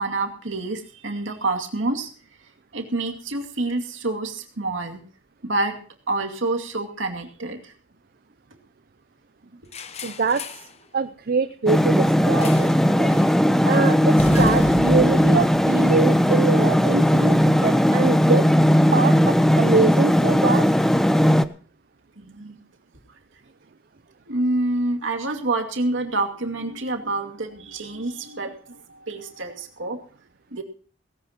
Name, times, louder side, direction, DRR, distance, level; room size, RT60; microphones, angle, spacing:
voice 1, 0.0-2.1 2.7-5.0 5.4-5.8 6.1-7.7 14.3-14.4 22.2-22.6 24.3-30.0 30.5-30.6, right 2 dB, 70° right, 3 dB, 2.4 m, -27 dB
sound 1, 9.7-10.7 12.4-12.8 13.1-13.4 14.2-16.5, left 2 dB, 30° left, 0.9 m, -32 dB
voice 2, 10.0-10.6 10.9-13.2 13.6-18.5 18.9-20.7, right 4 dB, 50° right, 11 dB, 0.5 m, -24 dB
sound 2, 11.7-21.4, equal, ahead, 0.6 m, -18 dB
17.5 x 16.5 x 2.9 m, 0.41 s
head